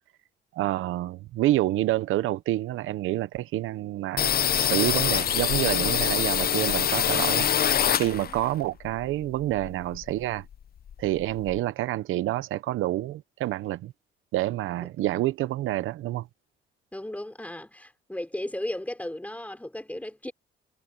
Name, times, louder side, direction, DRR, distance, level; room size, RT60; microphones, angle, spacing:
voice 1, 0.5-10.4 11.0-13.9 14.3-16.3, right 15 dB, 85° right, 0.8 m, -28 dB
sound 1, 4.2-8.5 8.8-10.2 10.5-10.6 10.9-11.6, left 9 dB, 50° left, 0.8 m, -25 dB
voice 2, 8.0-8.4 14.8-14.9 16.9-20.3, left 1 dB, 5° left, 5.9 m, -35 dB
cardioid pair, 90°, 20 cm